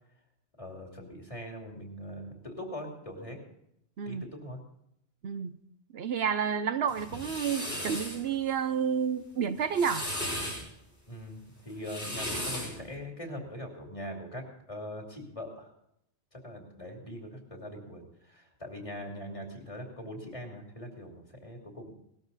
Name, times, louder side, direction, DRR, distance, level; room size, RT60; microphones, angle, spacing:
voice 1, 0.6-3.4 4.0-4.6 11.1-15.7 16.3-21.9, equal, 30° left, 1 dB, 2.7 m, -42 dB
voice 2, 5.2-5.6 5.9-10.1, right 7 dB, 70° right, 11 dB, 0.9 m, -30 dB
sound 1, 6.9-8.2 9.6-10.6 11.7-12.8, equal, 70° left, 6.7 m, -36 dB
18.5 x 13.0 x 4.0 m, 0.76 s
omnidirectional pair, 1.1 m